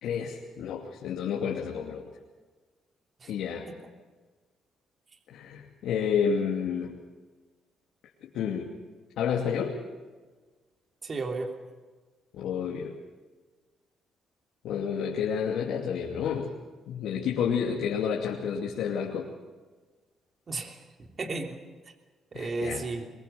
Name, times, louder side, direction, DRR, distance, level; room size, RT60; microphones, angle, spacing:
voice 1, 0.0-2.1 3.3-3.7 5.3-7.0 8.2-8.7 9.2-9.8 12.3-12.9 14.6-16.5 16.9-19.3 22.3-22.8, left 7 dB, 80° left, -1 dB, 2.7 m, -30 dB
voice 2, 11.0-11.5 20.5-21.6 21.9-22.0 22.3-23.1, right 3 dB, 40° right, 4 dB, 3.2 m, -34 dB
23.5 x 23.0 x 7.0 m, 1.4 s
cardioid pair, 90°, 0 cm